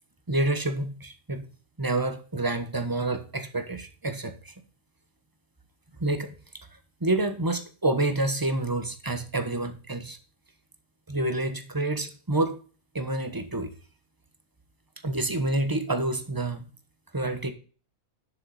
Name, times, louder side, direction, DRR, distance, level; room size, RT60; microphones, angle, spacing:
voice 1, 0.3-1.5 1.8-4.5 6.0-10.2 11.1-12.6 12.9-13.7 15.0-16.6 17.1-17.5, right 2 dB, 15° right, 1.0 m, -28 dB
10.5 x 6.6 x 4.2 m
omnidirectional pair, 1.6 m